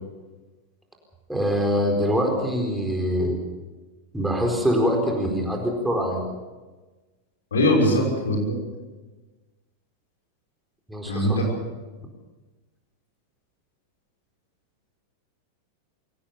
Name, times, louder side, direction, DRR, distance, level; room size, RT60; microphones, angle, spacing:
voice 1, 1.3-3.4 4.1-6.2 10.9-11.4, equal, 5° right, 1 dB, 4.5 m, -24 dB
voice 2, 7.5-8.6 11.1-11.4, left 1 dB, 65° left, 0 dB, 6.1 m, -21 dB
23.5 x 18.0 x 6.9 m, 1.2 s
figure-of-eight pair, 90°, 0 cm